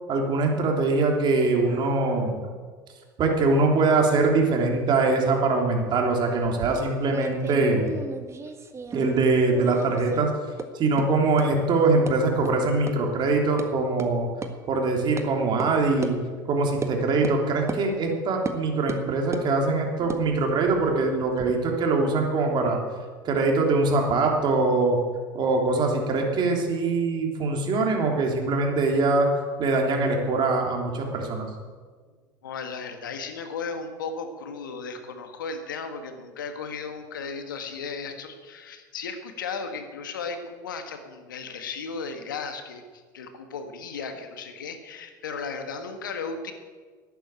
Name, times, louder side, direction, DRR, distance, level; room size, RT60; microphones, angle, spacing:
voice 1, 0.1-2.4 3.2-7.9 8.9-10.3 10.7-14.3 14.7-16.2 16.5-22.8 23.2-25.0 25.3-29.3 29.6-31.5, right 3 dB, 45° right, 1 dB, 3.3 m, -23 dB
sound 1, 6.4-9.2 9.5-10.2 10.6-10.7 11.0-11.1 11.4-11.5 12.1-12.2 12.4-12.5 12.9-13.0 13.3-13.7 14.0-14.1 14.4-14.5 15.2-15.3 15.6-15.7 16.0-16.1 16.8-16.9 17.2-17.4 17.7-17.8 18.4-18.6 18.9-19.5 20.0-21.5, right 4 dB, 25° right, 1.6 m, -35 dB
voice 2, 32.4-42.8 43.1-46.5, left 5 dB, 90° left, 7 dB, 1.7 m, -35 dB
11.5 x 9.2 x 8.9 m, 1.5 s
hypercardioid pair, 80°, 11 cm